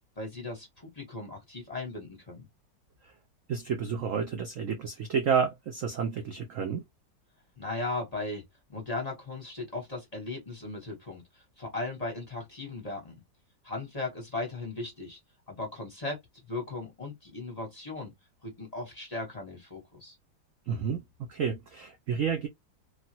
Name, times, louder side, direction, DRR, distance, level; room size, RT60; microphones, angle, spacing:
voice 1, 0.2-2.5 7.6-8.4 8.7-13.2 13.6-15.2 15.5-16.2 16.5-18.1 18.4-20.1, left 2 dB, 25° left, 1.0 m, -37 dB
voice 2, 3.5-6.8 20.7-21.0 21.3-22.5, right 6 dB, 65° right, 0.8 m, -30 dB
3.2 x 2.4 x 2.7 m
omnidirectional pair, 2.0 m